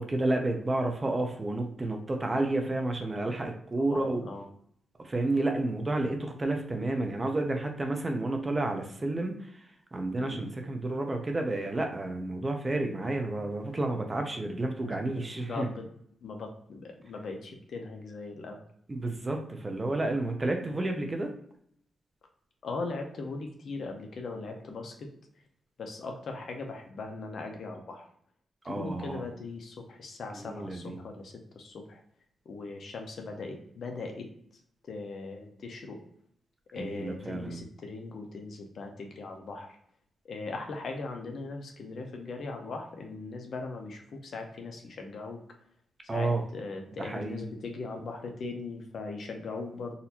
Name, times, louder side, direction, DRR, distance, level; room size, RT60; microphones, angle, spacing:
voice 1, 0.0-4.2 5.0-15.7 18.9-21.3 28.6-29.2 30.4-31.0 36.8-37.6 46.1-46.4 47.0-47.4, right 2 dB, 20° right, 4 dB, 0.6 m, -31 dB
voice 2, 3.8-4.4 10.2-10.5 14.8-15.9 16.2-18.6 20.6-20.8 22.6-25.1 25.8-28.1 28.6-32.0 32.4-34.6 34.9-36.0 36.7-39.8 40.2-45.4 46.1-49.9, left 3 dB, 60° left, 3 dB, 0.7 m, -39 dB
4.0 x 2.6 x 2.8 m, 0.67 s
wide cardioid pair, 130°, 0 cm